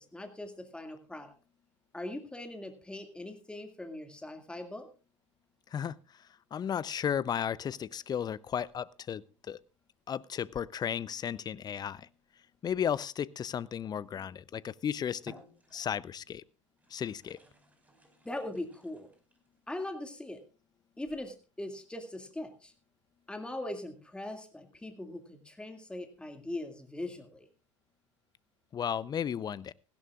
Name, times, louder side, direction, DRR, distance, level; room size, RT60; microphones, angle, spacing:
voice 1, 0.0-1.3 1.9-4.9 18.2-19.1 19.7-20.4 21.0-22.7 23.3-27.5, left 1 dB, 5° left, 2.1 m, -41 dB
voice 2, 6.5-9.6 10.1-12.1 12.6-15.3 15.7-16.4 16.9-17.4 28.7-29.7, left 8 dB, 25° left, 0.6 m, -34 dB
sound 1, 14.5-14.7 15.2-16.2 16.8-19.5, equal, 10° right, 5.1 m, -58 dB
17.5 x 16.0 x 2.4 m
figure-of-eight pair, 75°, 16 cm